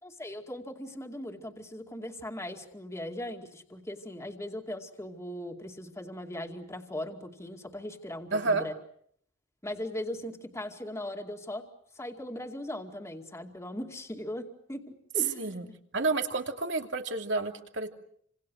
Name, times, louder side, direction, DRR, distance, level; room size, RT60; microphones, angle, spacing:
voice 1, 0.0-8.7 9.6-11.6 12.0-15.8, left 1 dB, 15° left, 3 dB, 2.4 m, -39 dB
voice 2, 8.3-8.7 15.4-15.7 15.9-17.9, right 3 dB, 70° right, 4 dB, 2.8 m, -30 dB
29.5 x 26.5 x 6.4 m, 0.66 s
head